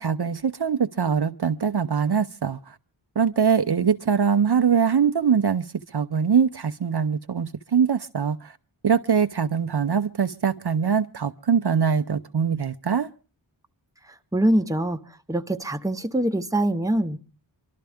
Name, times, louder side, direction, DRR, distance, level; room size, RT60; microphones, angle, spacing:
voice 1, 0.0-2.7 3.2-5.7 5.9-8.6 8.8-13.1, right 6 dB, 55° right, 0.7 m, -22 dB
voice 2, 14.3-15.0 15.3-17.2, right 1 dB, 5° right, 1.0 m, -23 dB
24.0 x 12.5 x 3.5 m
wide cardioid pair, 50°, 47 cm